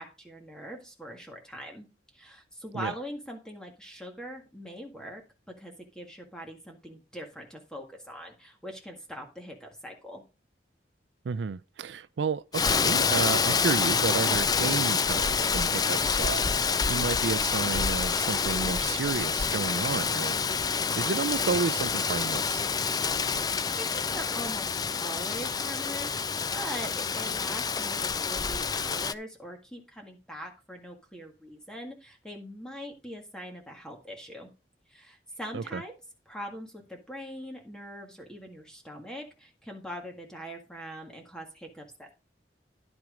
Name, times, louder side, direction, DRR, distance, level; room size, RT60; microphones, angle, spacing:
voice 1, 0.0-1.9 2.1-5.2 5.5-10.2 23.0-24.7 25.0-34.5 34.9-35.9 36.3-42.1, equal, 5° left, 1.8 m, -42 dB
voice 2, 11.2-20.4 20.9-22.6 35.5-35.8, right 5 dB, 80° right, 0.4 m, -31 dB
Rain, 12.5-29.1, left 5 dB, 20° left, 0.4 m, -27 dB
11.0 x 6.1 x 5.0 m
head